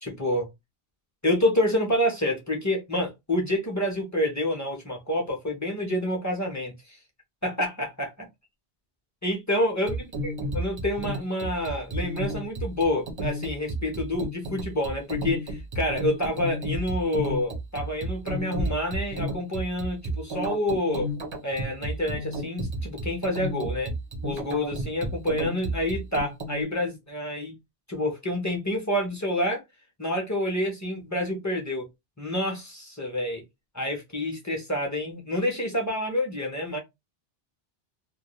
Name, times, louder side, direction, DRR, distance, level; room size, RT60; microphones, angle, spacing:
voice 1, 0.0-0.5 1.2-7.0 7.4-8.3 9.2-21.1 21.4-23.9 24.2-27.5 27.9-29.6 30.0-31.9 32.2-33.4 33.7-36.8, left 1 dB, 20° left, 0.5 m, -28 dB
sound 1, 9.9-26.6, right 1 dB, 35° right, 0.5 m, -32 dB
2.2 x 2.0 x 2.9 m
omnidirectional pair, 1.1 m